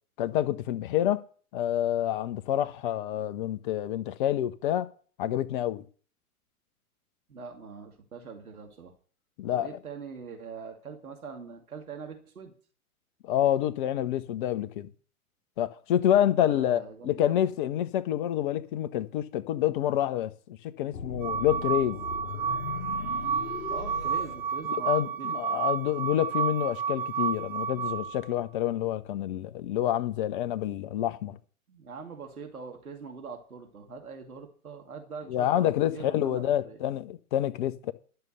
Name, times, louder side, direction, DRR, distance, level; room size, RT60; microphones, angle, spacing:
voice 1, 0.2-1.2 1.5-4.9 5.2-5.8 9.4-9.7 13.2-14.9 15.6-20.3 20.6-22.0 24.9-31.4 35.3-37.9, left 12 dB, 35° left, 0.9 m, -28 dB
voice 2, 7.3-8.9 9.5-12.5 16.4-17.4 23.7-25.7 31.7-36.8, right 5 dB, 75° right, 2.6 m, -43 dB
sound 1, 20.9-25.2, left 5 dB, 60° left, 1.4 m, -39 dB
sound 2, 21.2-28.2, right 7 dB, 5° right, 1.6 m, -31 dB
12.5 x 6.8 x 8.0 m
figure-of-eight pair, 115°, 44 cm